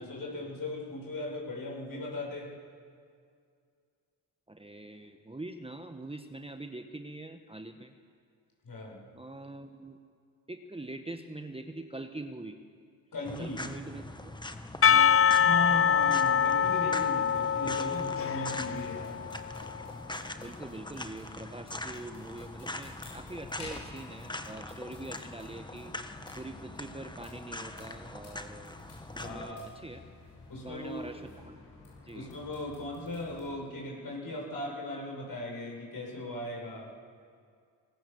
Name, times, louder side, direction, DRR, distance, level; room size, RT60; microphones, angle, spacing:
voice 1, 0.0-2.5 8.6-9.0 13.1-13.6 15.3-19.2 29.2-29.6 30.5-31.1 32.1-36.9, left 1 dB, 55° left, -1 dB, 7.3 m, -38 dB
voice 2, 4.5-7.9 9.1-10.0 10.5-12.6 13.4-14.4 14.8-15.1 20.4-28.8 29.1-30.0 30.6-31.6 32.0-32.3, right 2 dB, 15° right, 6 dB, 1.4 m, -44 dB
sound 1, 13.2-29.5, left 1 dB, 10° left, 1.5 m, -42 dB
Percussion / Church bell, 14.8-19.8, left 8 dB, 35° left, 0.5 m, -25 dB
sound 2, 15.6-33.6, left 3 dB, 80° left, 7.6 m, -53 dB
24.5 x 19.0 x 7.2 m, 2.2 s
supercardioid pair, 60°, 41 cm